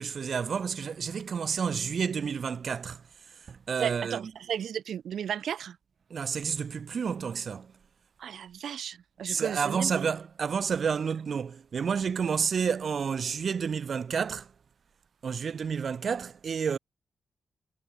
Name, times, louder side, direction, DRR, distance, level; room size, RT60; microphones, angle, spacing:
voice 1, 0.0-3.0 3.5-4.3 6.1-7.7 9.3-14.5 15.2-16.8, right 6 dB, 60° right, 4.5 m, -30 dB
voice 2, 3.8-5.8 8.2-10.1, right 9 dB, 80° right, 5.5 m, -34 dB
cardioid pair, 80°, 0 cm